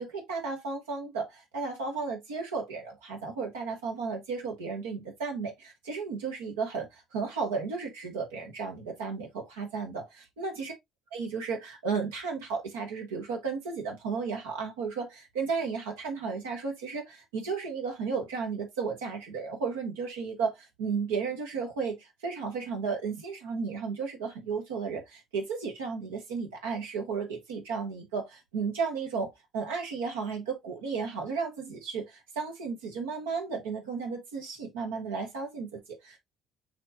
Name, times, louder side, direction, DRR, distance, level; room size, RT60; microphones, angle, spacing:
voice 1, 0.0-10.7 11.1-36.2, right 5 dB, 85° right, 1.0 m, -34 dB
6.3 x 2.9 x 2.5 m
hypercardioid pair, 60°, 0 cm